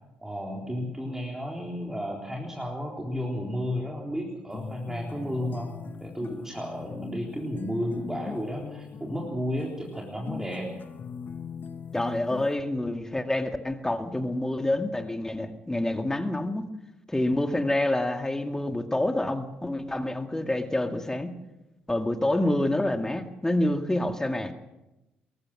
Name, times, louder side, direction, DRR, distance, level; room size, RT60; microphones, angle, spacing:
voice 1, 0.2-5.7 6.0-10.7, equal, 10° right, -2 dB, 4.0 m, -33 dB
sound 1, 4.5-12.6, left 6 dB, 40° left, 1.1 m, -41 dB
voice 2, 11.9-16.7 17.1-21.3 21.9-24.5, left 1 dB, 10° left, 7 dB, 2.0 m, -27 dB
22.5 x 19.5 x 6.2 m, 0.97 s
figure-of-eight pair, 45°, 5 cm